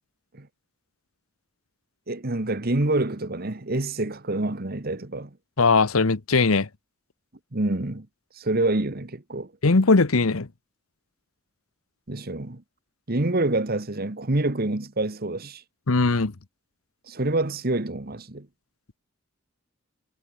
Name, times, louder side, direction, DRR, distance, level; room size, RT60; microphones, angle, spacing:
voice 1, 2.1-5.4 7.5-8.1 8.4-9.5 12.1-12.6 13.1-15.6 17.1-18.5, right 2 dB, 45° right, 1.5 m, -27 dB
voice 2, 5.6-6.7 9.6-10.5 15.9-16.3, left 3 dB, 85° left, 1.1 m, -19 dB
head